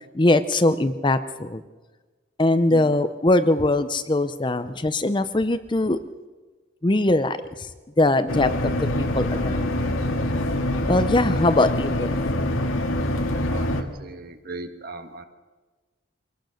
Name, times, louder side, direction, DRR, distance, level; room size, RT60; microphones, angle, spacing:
voice 1, 0.1-1.6 2.4-6.0 6.8-7.7 8.0-8.7 9.0-9.7 10.9-12.2, left 2 dB, 20° left, 11 dB, 0.6 m, -21 dB
sound 1, 8.3-13.8, left 1 dB, 80° left, 2.0 m, -25 dB
voice 2, 13.5-15.2, right 2 dB, 45° right, 8 dB, 1.6 m, -38 dB
24.5 x 18.5 x 6.5 m, 1.3 s
head